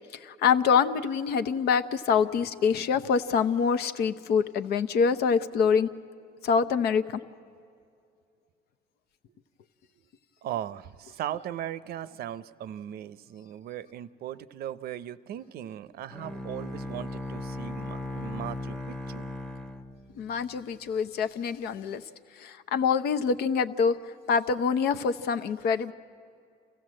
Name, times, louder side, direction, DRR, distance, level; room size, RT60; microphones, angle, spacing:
voice 1, 0.2-5.9 6.4-7.2 20.2-22.0 22.4-24.0 24.3-25.9, left 6 dB, 70° left, 11 dB, 0.8 m, -25 dB
voice 2, 10.4-19.3 21.8-21.9, right 11 dB, 65° right, 15 dB, 0.6 m, -38 dB
Bowed string instrument, 16.1-20.5, left 1 dB, 5° left, 0.9 m, -37 dB
28.0 x 16.0 x 7.6 m, 2.3 s
cardioid pair, 110°, 17 cm